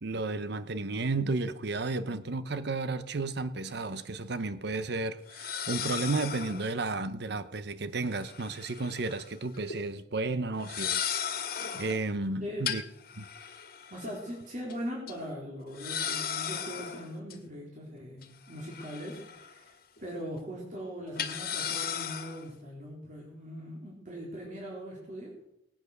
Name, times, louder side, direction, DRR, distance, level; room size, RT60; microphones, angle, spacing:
voice 1, 0.0-11.1 11.7-12.8 13.2-13.3, right 3 dB, 65° right, 0.8 m, -33 dB
sound 1, 3.7-3.8 5.3-6.7 8.1-9.3 9.5-9.8 10.6-12.0 12.7-14.3 14.7-14.8 15.1-15.2 15.7-17.3 18.2-19.6 20.0-20.1 21.2-22.5, left 8 dB, 55° left, 1.8 m, -36 dB
voice 2, 12.4-12.7 13.9-25.3, equal, 45° right, 3.8 m, -40 dB
19.0 x 8.9 x 6.6 m
head